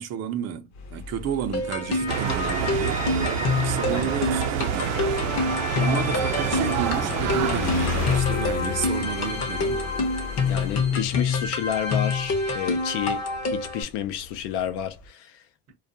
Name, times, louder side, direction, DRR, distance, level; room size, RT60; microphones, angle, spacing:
voice 1, 0.0-3.1 3.6-9.8 10.9-11.0, right 8 dB, 35° right, 0.5 m, -32 dB
Motorcycle, 0.7-15.1, left 8 dB, 85° left, 0.9 m, -35 dB
sound 1, 1.5-13.8, left 3 dB, 35° left, 0.7 m, -27 dB
sound 2, 2.1-8.2, right 8 dB, 85° right, 0.6 m, -27 dB
voice 2, 10.5-15.5, left 11 dB, 70° left, 0.5 m, -30 dB
2.3 x 2.1 x 2.6 m
cardioid pair, 135°, 44 cm